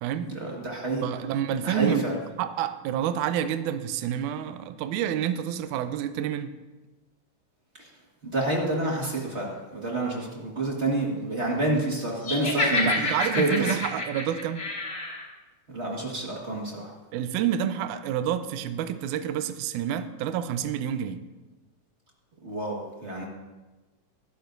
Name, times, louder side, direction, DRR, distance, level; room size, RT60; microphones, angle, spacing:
voice 1, 0.3-1.0 1.6-2.1 7.8-7.9 8.2-13.8 15.7-16.9 22.4-23.2, right 2 dB, 35° right, -2 dB, 1.1 m, -28 dB
voice 2, 1.0-2.1 2.4-6.5 12.7-14.6 17.1-21.2, right 10 dB, 80° right, 10 dB, 1.9 m, -29 dB
Laughter, 12.2-15.2, left 2 dB, 35° left, 2.3 m, -28 dB
21.5 x 12.0 x 2.6 m, 1.2 s
omnidirectional pair, 3.9 m